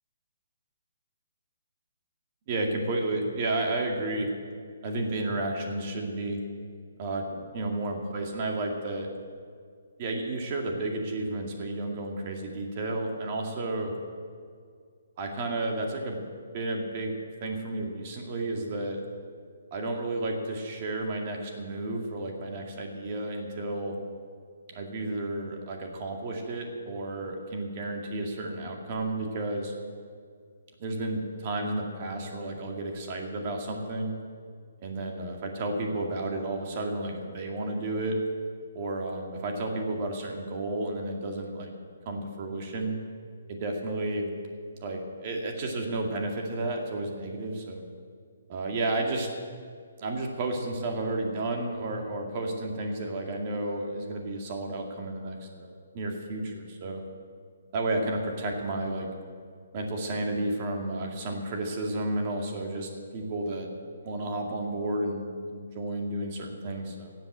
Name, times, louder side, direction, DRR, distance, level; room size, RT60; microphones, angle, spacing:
voice 1, 2.5-4.3 4.8-6.4 7.0-9.1 10.0-13.9 15.2-16.2 16.5-17.1 17.4-19.0 19.7-24.0 24.7-29.7 30.8-34.1 34.8-38.2 38.7-41.7 42.1-43.0 43.5-44.3 44.8-47.8 48.5-49.3 50.0-57.0 57.7-59.1 59.7-63.7 64.0-67.1, right 2 dB, 40° right, 2 dB, 2.1 m, -32 dB
14.0 x 7.8 x 8.5 m, 2.1 s
hypercardioid pair, 150°, 0 cm